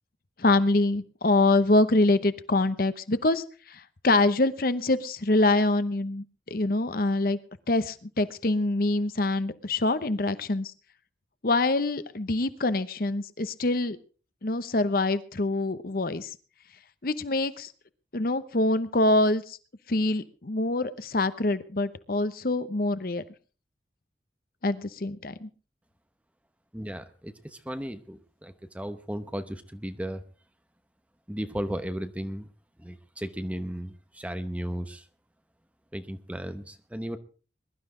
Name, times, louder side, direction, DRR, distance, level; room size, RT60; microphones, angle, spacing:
voice 1, 0.4-7.4 7.7-10.7 11.4-14.0 14.4-16.4 17.0-17.7 18.1-19.6 19.9-23.2 24.6-25.5, left 2 dB, 50° left, 13 dB, 0.8 m, -25 dB
voice 2, 26.7-30.2 31.3-32.5 32.8-35.0 35.9-37.2, equal, 10° right, 9 dB, 0.9 m, -35 dB
21.5 x 12.0 x 3.8 m, 0.37 s
head